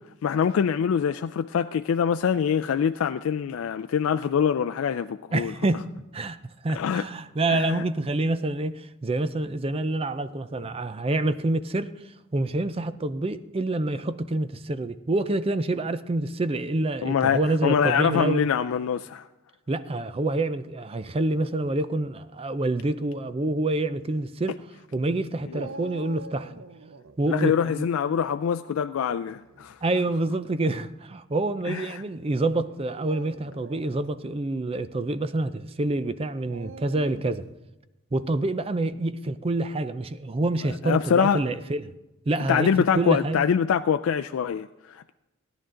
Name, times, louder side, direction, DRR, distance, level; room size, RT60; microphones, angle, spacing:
voice 1, 0.2-5.5 6.7-7.0 7.5-7.8 17.0-19.2 27.3-29.8 31.7-32.0 40.8-41.4 42.5-45.1, left 7 dB, 85° left, 0.3 m, -24 dB
voice 2, 5.3-5.8 6.1-6.4 6.6-11.9 12.3-18.5 19.7-24.6 24.9-26.5 27.2-27.9 29.8-37.4 38.1-41.9 42.3-43.4, right 2 dB, 30° right, 0.4 m, -27 dB
Dog, 25.5-27.2 29.3-29.7 30.5-30.6 32.8-34.0 36.5-37.5, right 3 dB, 70° right, 0.6 m, -44 dB
16.5 x 10.5 x 3.8 m
head